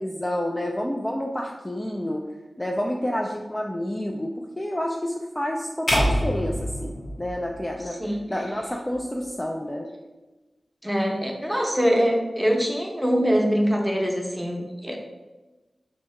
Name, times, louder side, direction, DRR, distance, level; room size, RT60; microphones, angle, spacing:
voice 1, 0.0-2.2 2.6-8.0 8.3-9.9, left 1 dB, 15° left, 0 dB, 0.3 m, -29 dB
sound 1, 5.9-8.1, equal, 40° left, 0.7 m, -26 dB
voice 2, 10.8-15.0, equal, 5° right, 0 dB, 0.7 m, -23 dB
2.7 x 2.7 x 4.3 m, 1.1 s
wide cardioid pair, 75°, 0 cm